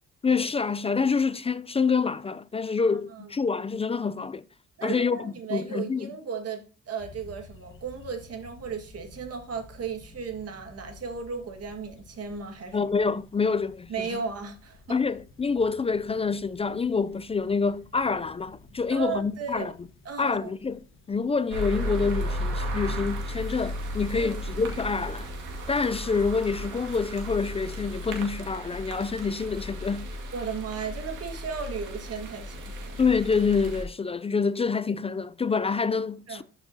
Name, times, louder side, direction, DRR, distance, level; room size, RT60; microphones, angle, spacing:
voice 1, 0.2-4.4 4.8-6.1 12.7-14.1 14.9-19.7 20.2-20.8 21.1-25.3 25.7-30.1 33.0-36.4, left 5 dB, 20° left, 0.3 m, -27 dB
voice 2, 2.8-3.3 4.8-12.8 13.9-15.0 18.9-19.7 20.0-20.5 24.2-24.3 30.3-33.0 36.3-36.4, right 6 dB, 55° right, 1.8 m, -35 dB
sound 1, 7.0-26.4, left 3 dB, 40° left, 1.4 m, -53 dB
sound 2, 21.5-33.8, equal, 85° right, 2.1 m, -34 dB
12.0 x 6.1 x 2.8 m
cardioid pair, 90°, 30 cm